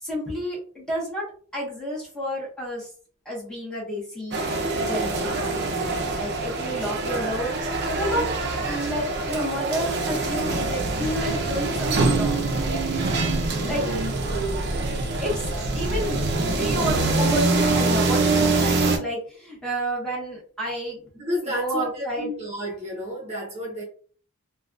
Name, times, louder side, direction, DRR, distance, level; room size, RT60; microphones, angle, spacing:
voice 1, 0.0-2.9 3.2-4.5 4.8-12.5 13.6-13.8 15.2-21.0 21.4-22.3, equal, 5° left, -5 dB, 1.3 m, -31 dB
sound 1, 4.3-19.0, right 3 dB, 55° right, 0.6 m, -24 dB
voice 2, 13.5-14.0 21.1-23.8, equal, 35° right, -4 dB, 0.9 m, -31 dB
3.2 x 2.3 x 2.5 m, 0.43 s
head